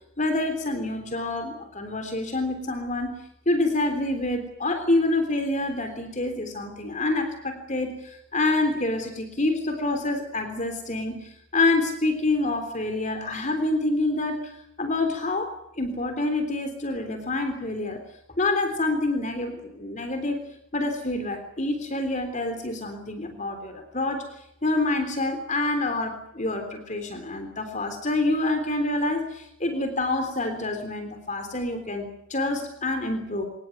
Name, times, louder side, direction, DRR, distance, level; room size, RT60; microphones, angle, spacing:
voice 1, 0.2-3.2 3.5-14.5 14.8-18.0 18.4-20.4 20.7-24.3 24.6-33.5, left 2 dB, 35° left, 6 dB, 3.5 m, -27 dB
24.5 x 19.0 x 9.3 m, 0.77 s
head